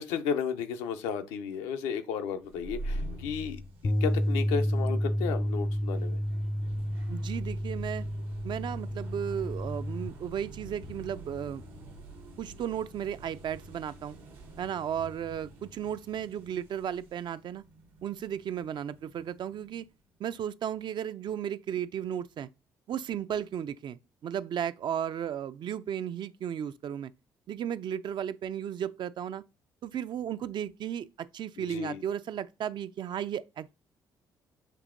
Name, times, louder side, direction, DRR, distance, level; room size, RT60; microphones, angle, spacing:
voice 1, 0.0-6.2 31.6-32.0, left 7 dB, 85° left, 0.5 m, -33 dB
sound 1, 2.4-19.8, right 1 dB, 80° right, 0.9 m, -45 dB
Bass guitar, 3.8-10.1, equal, 30° left, 0.5 m, -30 dB
voice 2, 7.1-8.1 8.4-11.6 12.4-14.2 14.6-17.6 18.0-19.9 20.2-22.5 22.9-27.1 27.5-29.4 29.8-33.7, right 9 dB, 55° right, 0.3 m, -34 dB
6.7 x 2.8 x 2.5 m
supercardioid pair, 55°, 9 cm